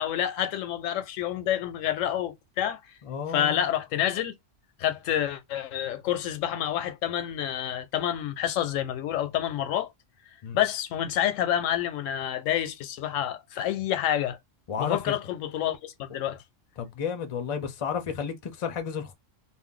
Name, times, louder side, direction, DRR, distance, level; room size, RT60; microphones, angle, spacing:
voice 1, 0.0-2.8 3.3-4.3 4.8-9.9 10.5-14.4 14.8-16.4, left 11 dB, 90° left, 0.9 m, -28 dB
voice 2, 3.0-3.6 10.4-10.6 14.7-15.1 16.8-19.1, left 7 dB, 45° left, 0.4 m, -32 dB
2.6 x 2.1 x 3.7 m
omnidirectional pair, 1.3 m